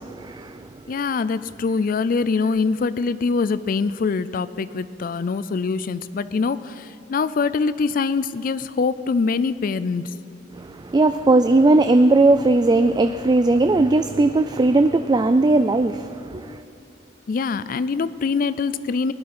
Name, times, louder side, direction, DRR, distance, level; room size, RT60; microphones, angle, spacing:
voice 1, 0.0-0.7 10.6-16.6, right 2 dB, 25° right, 0.3 m, -18 dB
voice 2, 0.9-10.1 17.3-19.1, left 4 dB, 50° left, 0.4 m, -24 dB
18.5 x 11.0 x 6.0 m
head